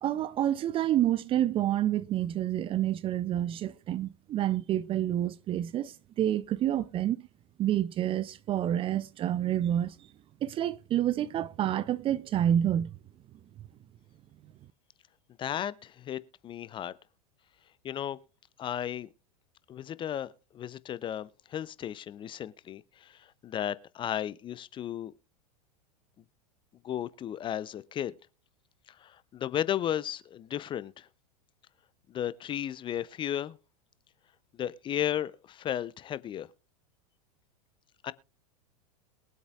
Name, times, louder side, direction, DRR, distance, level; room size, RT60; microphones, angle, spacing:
voice 1, 0.0-7.2 7.6-9.9 10.4-12.9, right 11 dB, 25° right, 0.5 m, -28 dB
voice 2, 15.4-16.9 17.8-18.2 18.6-19.1 19.7-25.1 26.8-28.1 28.9-31.1 32.1-33.6 34.6-36.5 38.0-38.1, left 10 dB, 25° left, 0.5 m, -34 dB
22.0 x 8.1 x 2.4 m
figure-of-eight pair, 90°, 21 cm